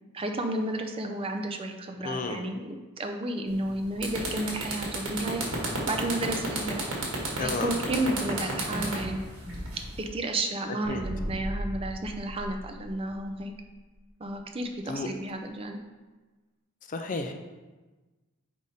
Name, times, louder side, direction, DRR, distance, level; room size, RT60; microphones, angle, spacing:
voice 1, 0.1-5.5 5.9-9.2 10.0-13.5 14.2-15.8, right 1 dB, 25° right, 5 dB, 0.5 m, -32 dB
voice 2, 2.0-2.4 7.4-7.7 10.9-11.0 14.8-15.1 16.9-17.3, left 3 dB, 35° left, 6 dB, 0.4 m, -32 dB
sound 1, 3.5-3.7 4.0-10.1, right 2 dB, 70° right, 1.7 m, -32 dB
sound 2, 10.8-13.5, right 1 dB, 50° right, 2.1 m, -36 dB
5.2 x 4.9 x 4.2 m, 1.2 s
head